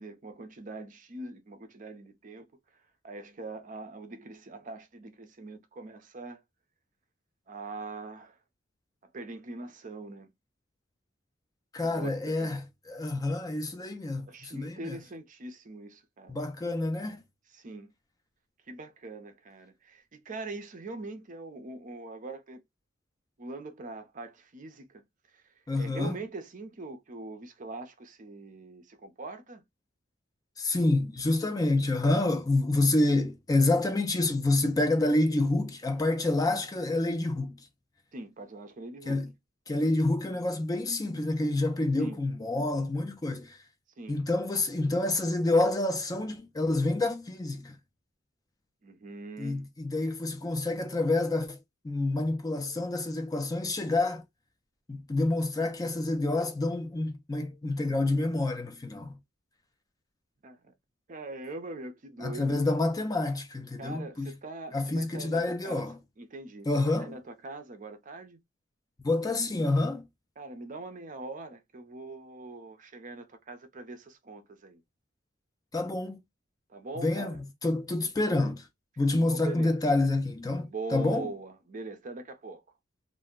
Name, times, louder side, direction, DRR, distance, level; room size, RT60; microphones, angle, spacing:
voice 1, 0.0-2.5 3.0-6.4 7.5-8.4 9.1-10.3 11.9-12.1 12.4-12.6 14.3-16.4 17.5-17.9 18.7-22.6 23.4-25.0 25.3-25.4 25.8-29.6 38.1-39.2 42.0-42.2 44.0-44.2 48.8-49.7 60.4-60.7 61.1-62.8 63.8-65.8 66.2-68.4 70.4-74.8 76.7-77.4 79.3-79.8 80.6-82.6, right 3 dB, 40° right, 0.6 m, -42 dB
voice 2, 11.7-15.0 16.3-17.2 25.7-26.2 30.6-37.6 39.1-39.3 39.7-43.6 44.1-47.8 49.4-51.6 51.8-54.2 54.9-59.2 62.2-64.3 64.7-66.0 66.7-67.2 69.0-70.1 75.7-76.2 77.0-77.3 77.6-78.7 79.0-81.3, left 2 dB, 20° left, 0.4 m, -28 dB
2.5 x 2.1 x 3.6 m
head